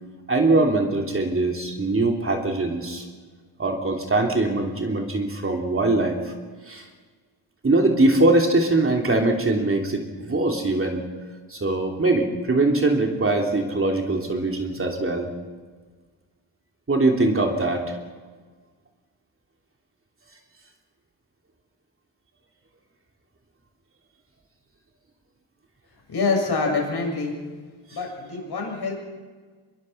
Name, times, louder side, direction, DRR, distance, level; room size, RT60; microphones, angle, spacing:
voice 1, 0.3-3.1 3.6-6.3 6.7-6.9 7.6-11.0 11.5-15.3 16.9-18.0, right 2 dB, 25° right, 2 dB, 3.1 m, -22 dB
voice 2, 26.1-27.4 27.9-28.9, left 3 dB, 50° left, 1 dB, 7.4 m, -25 dB
25.0 x 22.5 x 5.9 m, 1.5 s
cardioid pair, 120°, 50 cm